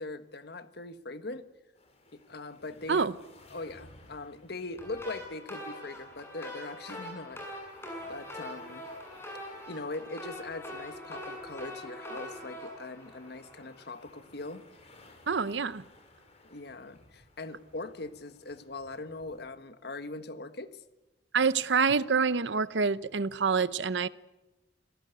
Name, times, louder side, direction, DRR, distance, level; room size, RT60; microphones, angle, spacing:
voice 1, 0.0-1.5 2.1-3.1 3.5-7.4 8.1-8.8 9.7-14.6 16.5-20.8, left 2 dB, 65° left, 1.5 m, -41 dB
sound 1, 1.7-19.5, left 2 dB, 40° left, 5.3 m, -59 dB
sound 2, 4.8-13.9, left 1 dB, 15° left, 7.6 m, -43 dB
voice 2, 15.3-15.8 21.3-24.1, right 5 dB, 90° right, 0.8 m, -26 dB
26.5 x 18.0 x 8.1 m
head